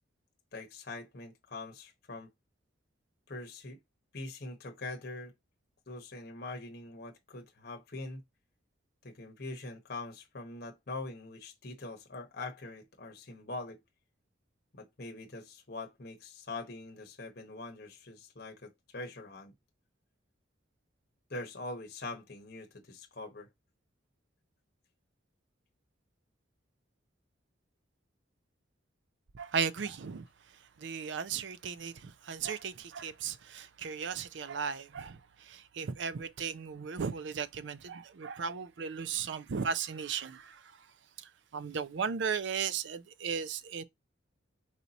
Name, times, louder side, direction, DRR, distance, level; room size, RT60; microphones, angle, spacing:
voice 1, 0.5-2.3 3.3-3.8 4.1-5.3 5.9-8.2 9.0-13.8 14.7-19.5 21.3-23.5, left 2 dB, 50° left, 0.9 m, -43 dB
voice 2, 29.4-30.2 30.8-35.1 35.8-40.4 41.5-43.8, right 6 dB, 65° right, 0.4 m, -36 dB
4.7 x 2.8 x 4.0 m
head